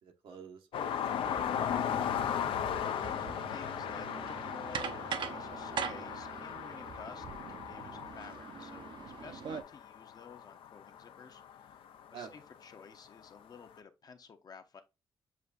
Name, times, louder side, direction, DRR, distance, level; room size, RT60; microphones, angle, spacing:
voice 1, 0.0-1.7 9.2-9.4 12.1-12.3, right 6 dB, 85° right, 1.0 m, -50 dB
sound 1, 0.7-12.2 13.6-13.7, left 9 dB, 85° left, 0.4 m, -37 dB
sound 2, 1.2-9.6, right 6 dB, 65° right, 0.5 m, -43 dB
voice 2, 2.8-8.9 9.2-11.8 12.1-14.8, left 5 dB, 45° left, 0.7 m, -52 dB
7.0 x 2.5 x 2.4 m
cardioid pair, 95°, 9 cm